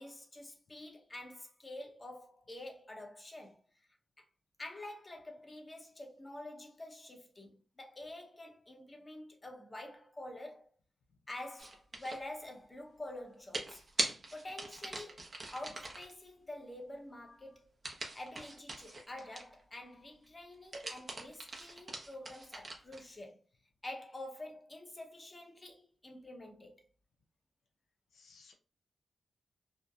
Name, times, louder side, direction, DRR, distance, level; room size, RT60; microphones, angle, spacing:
voice 1, 0.0-3.9 4.6-10.7 11.3-13.8 14.3-17.7 18.1-23.4 23.8-26.8, left 1 dB, 25° left, 0.8 m, -48 dB
sound 1, 11.6-12.3 13.5-16.1 17.8-19.6 20.5-23.1, right 2 dB, 45° right, 0.7 m, -41 dB
voice 2, 28.1-28.5, left 4 dB, 90° left, 0.4 m, -61 dB
2.7 x 2.1 x 2.4 m
cardioid pair, 65°, 0 cm